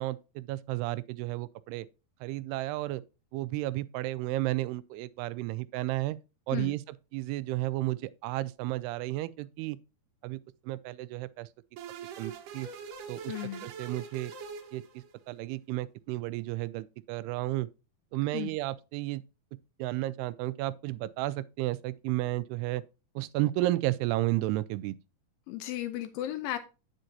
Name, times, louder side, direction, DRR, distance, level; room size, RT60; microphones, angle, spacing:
voice 1, 0.0-1.9 2.2-3.0 3.3-6.2 6.5-6.8 7.1-9.8 10.2-10.4 10.6-11.5 12.2-12.7 13.1-13.3 13.6-14.3 14.7-14.8 15.3-17.7 18.1-19.2 19.8-22.8 23.2-25.0, right 17 dB, 90° right, 2.6 m, -32 dB
sound 1, 11.8-15.4, right 6 dB, 65° right, 2.5 m, -43 dB
voice 2, 13.3-13.7 18.3-18.5 25.5-26.6, left 13 dB, 80° left, 2.3 m, -35 dB
9.0 x 7.1 x 2.7 m
omnidirectional pair, 4.5 m